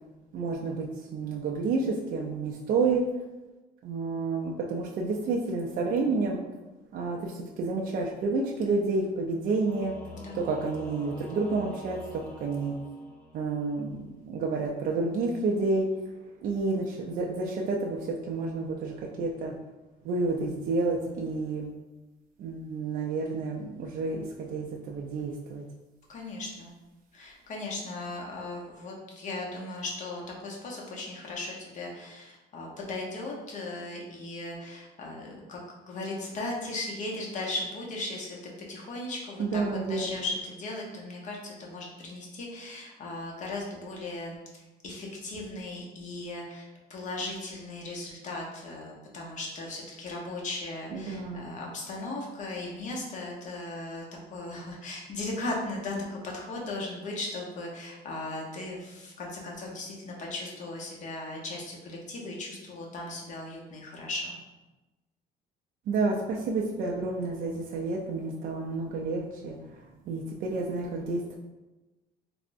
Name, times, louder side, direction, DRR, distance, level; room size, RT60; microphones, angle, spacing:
voice 1, 0.3-3.0 3.8-6.4 6.9-9.9 10.3-12.0 12.4-12.8 13.3-15.9 16.4-19.5 20.0-21.7 22.4-25.6 39.4-40.3 50.9-51.5 65.9-71.4, right 3 dB, 55° right, -1 dB, 0.4 m, -30 dB
Singing / Musical instrument, 9.7-13.7, left 1 dB, 5° left, 0.4 m, -45 dB
voice 2, 26.1-26.7 27.1-35.6 35.9-38.4 38.7-39.6 39.9-54.0 54.3-64.4, left 2 dB, 45° left, -2 dB, 0.7 m, -37 dB
3.3 x 2.0 x 2.5 m, 1.1 s
cardioid pair, 110°, 17 cm